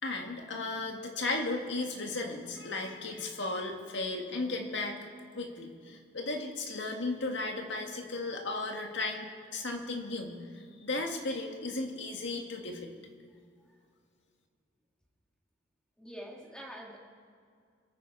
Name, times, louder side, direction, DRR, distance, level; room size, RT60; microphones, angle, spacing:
voice 1, 0.0-5.0 5.4-12.9, left 2 dB, 65° left, 3 dB, 1.9 m, -35 dB
voice 2, 16.0-17.0, equal, 5° left, -1 dB, 2.0 m, -45 dB
25.0 x 9.1 x 4.6 m, 2.3 s
head